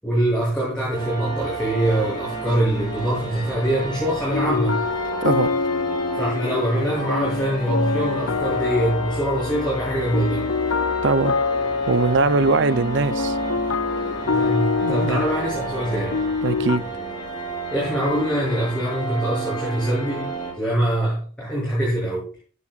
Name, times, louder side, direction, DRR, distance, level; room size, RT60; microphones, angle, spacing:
voice 1, 0.0-4.8 6.1-10.5 14.2-16.2 17.7-20.3 20.6-22.3, right 1 dB, 5° left, 7.8 m, -23 dB
sound 1, 0.9-20.5, right 2 dB, 20° left, 5.2 m, -32 dB
sound 2, 4.3-16.8, left 5 dB, 85° left, 0.6 m, -26 dB
voice 2, 5.2-5.5 11.0-11.4 11.9-13.3 14.8-15.2 16.4-16.8, right 3 dB, 60° right, 0.8 m, -21 dB
17.0 x 11.0 x 2.5 m
head